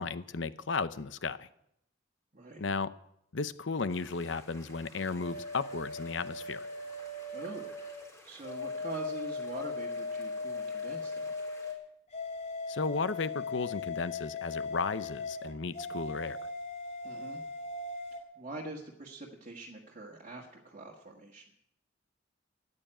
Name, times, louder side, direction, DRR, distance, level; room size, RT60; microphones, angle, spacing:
voice 1, 0.0-1.5 2.6-2.9 3.3-6.7 12.7-16.4, left 4 dB, 70° left, 14 dB, 0.7 m, -34 dB
sound 1, 3.9-11.7, left 1 dB, 15° left, 4.2 m, -56 dB
sound 2, 5.2-8.0 8.4-11.8 12.1-18.2, left 3 dB, 40° left, 3.1 m, -39 dB
voice 2, 7.3-7.7 8.2-11.3 17.0-17.4 18.4-21.4, right 2 dB, 40° right, -1 dB, 1.7 m, -44 dB
14.0 x 9.8 x 8.9 m, 0.76 s
head